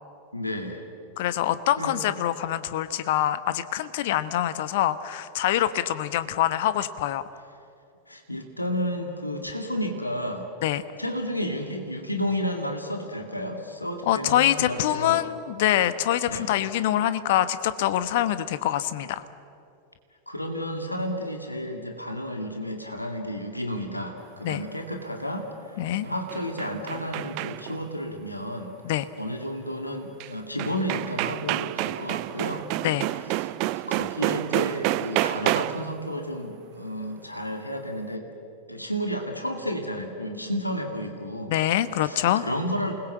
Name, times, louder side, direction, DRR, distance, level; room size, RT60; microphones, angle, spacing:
voice 1, 0.3-0.9 1.8-2.0 8.1-10.5 11.0-15.2 16.2-16.5 20.3-25.5 25.7-28.7 29.2-32.7 33.4-38.3 38.7-41.5 42.0-43.1, equal, 85° left, 4 dB, 2.3 m, -32 dB
voice 2, 1.2-7.3 10.6-10.8 14.1-19.2 24.4-24.6 25.8-26.1 28.8-29.1 32.8-33.1 41.5-42.4, left 12 dB, 50° left, 13 dB, 1.2 m, -25 dB
sound 1, 26.1-27.8 30.2-30.3 30.6-35.9, right 18 dB, 45° right, 0.6 m, -29 dB
28.0 x 21.0 x 8.0 m, 2.4 s
figure-of-eight pair, 90°, 0 cm